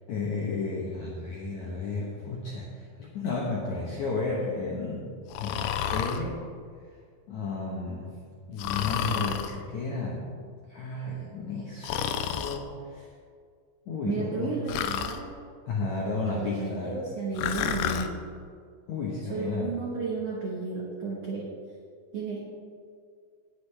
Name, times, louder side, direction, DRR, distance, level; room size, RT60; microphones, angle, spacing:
voice 1, 0.1-6.4 7.3-8.1 8.5-10.3 10.7-12.0 12.3-13.1 13.9-14.6 15.7-17.0 18.9-19.8, left 3 dB, 75° left, -4 dB, 1.7 m, -33 dB
Breathing, 5.3-6.2 8.6-9.5 11.8-12.6 14.7-15.2 17.4-18.1, left 9 dB, 90° left, 2.2 m, -30 dB
voice 2, 14.0-15.3 16.3-18.1 19.3-21.5 22.1-22.5, right 4 dB, 80° right, -4 dB, 1.4 m, -33 dB
18.0 x 7.9 x 3.4 m, 2.1 s
omnidirectional pair, 5.1 m